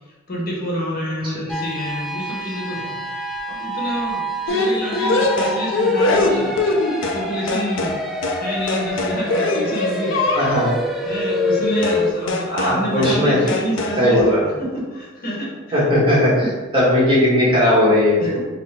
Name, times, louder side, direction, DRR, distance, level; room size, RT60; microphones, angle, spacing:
voice 1, 0.3-3.0 3.5-8.0 8.3-10.4 11.0-15.8 16.4-16.5 18.2-18.4, equal, 45° left, -4 dB, 0.9 m, -27 dB
sound 1, 1.5-12.1, left 1 dB, ahead, 0.3 m, -27 dB
sound 2, 4.5-7.2 7.5-8.0 8.2-8.4 8.7-10.8 11.8-12.0 12.3-12.8 13.0-13.2 13.5-14.0, left 2 dB, 65° left, 0.4 m, -22 dB
voice 2, 10.4-10.7 12.5-13.4 14.0-14.4 15.7-16.5 16.7-18.3, left 1 dB, 25° right, -7 dB, 1.2 m, -17 dB
3.9 x 2.0 x 4.1 m, 1.3 s
head